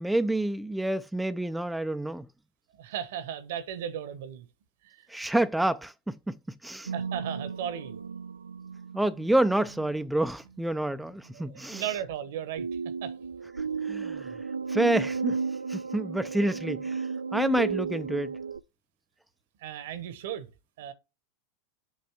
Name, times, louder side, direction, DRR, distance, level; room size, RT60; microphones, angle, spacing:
voice 1, 0.0-2.3 5.1-6.4 6.6-6.9 8.9-11.9 13.8-14.3 14.7-15.4 15.7-18.3, right 1 dB, 5° right, 0.4 m, -28 dB
voice 2, 2.7-4.5 4.8-5.0 6.9-8.0 10.8-11.0 11.3-12.7 13.0-13.1 19.6-20.5 20.8-20.9, right 9 dB, 65° right, 1.0 m, -36 dB
sound 1, 6.9-10.0 12.6-18.6, right 5 dB, 85° right, 0.3 m, -34 dB
7.5 x 3.1 x 4.6 m
figure-of-eight pair, 90°, 0 cm